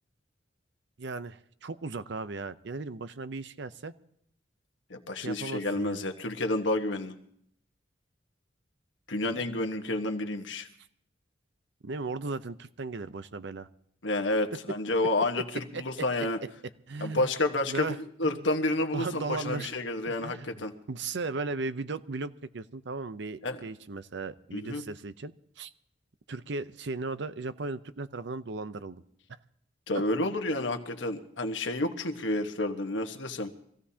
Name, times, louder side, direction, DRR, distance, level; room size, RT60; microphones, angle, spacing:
voice 1, 1.0-3.9 5.2-6.0 9.2-9.4 11.8-13.7 15.4-15.5 15.7-16.1 16.9-17.3 17.6-18.0 18.2-18.4 18.9-19.7 20.1-25.7 26.3-29.0, right 3 dB, 65° right, 13 dB, 0.7 m, -36 dB
voice 2, 4.9-7.1 9.1-10.7 14.0-16.4 17.0-20.7 23.4-23.6 24.5-24.8 29.9-33.5, left 2 dB, 80° left, 6 dB, 1.4 m, -30 dB
24.5 x 15.5 x 2.9 m, 0.70 s
head